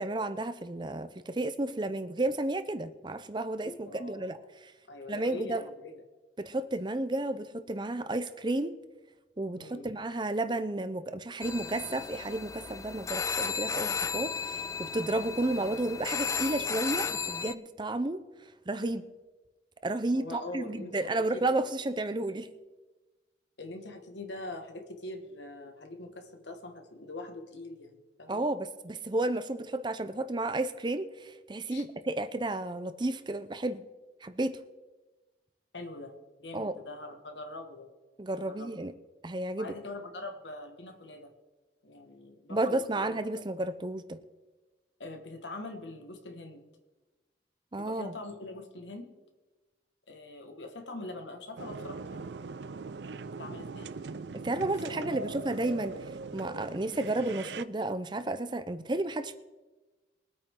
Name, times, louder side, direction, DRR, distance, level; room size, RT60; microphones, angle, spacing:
voice 1, 0.0-4.4 4.6-4.7 5.1-5.6 6.4-8.7 9.4-18.2 18.7-19.1 19.8-22.5 28.3-33.8 34.2-34.6 36.5-36.8 38.2-38.9 39.2-39.7 42.5-44.2 47.7-48.2 54.3-56.0 56.3-59.4, right 2 dB, 25° right, 11 dB, 0.6 m, -32 dB
voice 2, 3.6-4.5 4.9-6.0 9.6-9.9 13.6-13.9 20.1-21.6 23.6-28.5 31.7-31.8 35.7-37.9 38.4-38.7 39.6-41.3 41.8-43.1 43.3-43.4 45.0-46.6 47.8-49.1 50.1-52.5 53.4-54.1 54.9-55.0, left 2 dB, 85° left, 4 dB, 1.8 m, -43 dB
sound 1, 11.4-17.5, left 6 dB, 15° left, 0.3 m, -34 dB
sound 2, 51.6-57.6, right 4 dB, 70° right, 0.5 m, -41 dB
22.5 x 8.9 x 3.8 m, 1.2 s
head